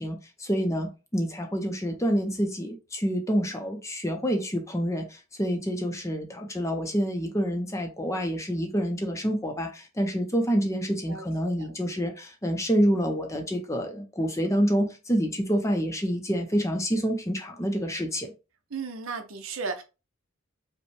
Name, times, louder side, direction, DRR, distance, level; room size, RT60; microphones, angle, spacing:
voice 1, 0.0-18.3, equal, 15° left, 0.5 m, -27 dB
voice 2, 11.1-11.7 18.7-19.8, right 4 dB, 70° right, 0.7 m, -35 dB
5.2 x 2.2 x 3.2 m
head